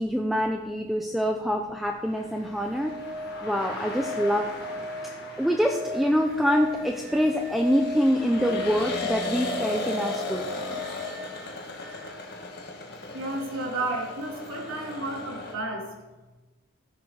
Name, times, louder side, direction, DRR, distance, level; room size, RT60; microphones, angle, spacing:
voice 1, 0.0-2.9 3.4-4.5 5.4-10.7, equal, ahead, 2 dB, 0.5 m, -25 dB
sound 1, 2.1-15.5, left 2 dB, 50° left, 1.6 m, -37 dB
sound 2, 2.3-12.1 14.4-14.5, left 1 dB, 50° right, 1.4 m, -37 dB
voice 2, 13.1-15.9, right 2 dB, 80° right, -1 dB, 2.9 m, -32 dB
15.5 x 6.8 x 4.8 m, 1.1 s
head